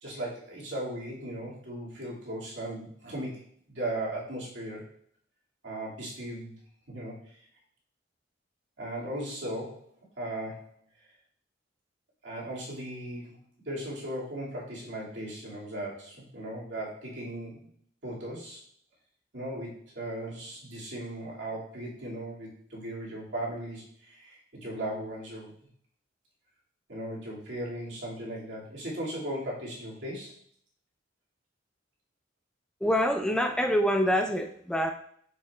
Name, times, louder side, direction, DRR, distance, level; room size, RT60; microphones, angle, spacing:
voice 1, 0.0-3.4 3.7-4.9 5.6-6.5 6.9-7.4 8.8-9.9 10.2-10.7 12.2-13.4 13.7-17.7 18.0-18.6 19.3-25.5 26.9-30.4, right 1 dB, 70° right, -5 dB, 2.3 m, -37 dB
voice 2, 32.8-34.9, equal, 5° left, 4 dB, 0.3 m, -25 dB
6.6 x 6.4 x 2.3 m, 0.63 s
head